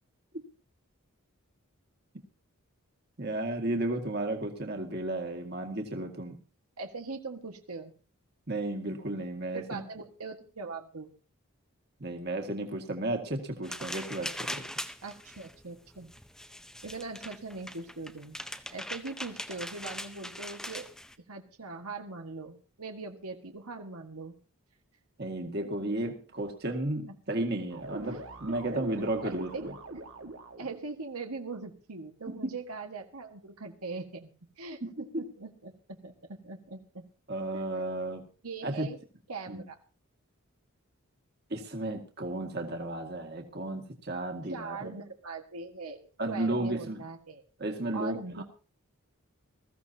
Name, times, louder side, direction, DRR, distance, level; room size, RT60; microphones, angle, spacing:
voice 1, 3.2-6.4 8.5-9.8 12.0-14.6 25.2-29.7 32.3-32.4 34.8-35.0 37.3-38.2 38.6-38.9 39.5-39.6 41.5-45.0 46.2-47.0 47.6-48.4, right 1 dB, 45° right, 4 dB, 1.9 m, -33 dB
voice 2, 6.8-7.9 9.5-11.1 15.0-16.1 16.8-18.4 18.7-20.9 21.3-24.3 25.6-26.1 27.3-27.4 28.1-28.2 28.5-28.8 29.2-29.7 30.6-34.3 34.6-37.0 37.5-37.6 38.4-39.0 39.3-39.8 44.5-47.4 47.9-48.4, right 3 dB, 90° right, 4 dB, 1.7 m, -41 dB
sound 1, 13.6-21.1, left 1 dB, 5° left, 0.6 m, -41 dB
sound 2, 27.7-30.8, right 2 dB, 65° right, 1.7 m, -43 dB
20.5 x 14.5 x 2.8 m, 0.36 s
head